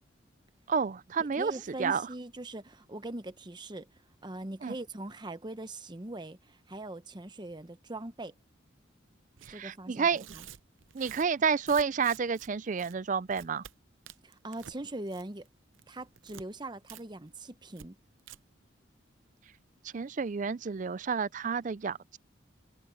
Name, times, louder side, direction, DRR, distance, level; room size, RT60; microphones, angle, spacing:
voice 1, 0.7-1.5 1.8-2.0 4.6-4.8 9.5-10.3 10.9-13.6 19.9-22.2, right 5 dB, 40° right, 0.4 m, -30 dB
voice 2, 1.3-3.9 4.2-8.3 9.5-10.5 14.2-15.5 15.9-18.0, right 2 dB, 25° right, 0.8 m, -41 dB
Tearing, 9.4-9.5 10.1-12.5 12.8-12.9 13.3-13.7 14.1-14.8 15.1-15.5 15.7-16.4 16.9-17.0 17.3-17.4 17.7-17.9 18.2-18.4, right 9 dB, 85° right, 0.7 m, -49 dB
head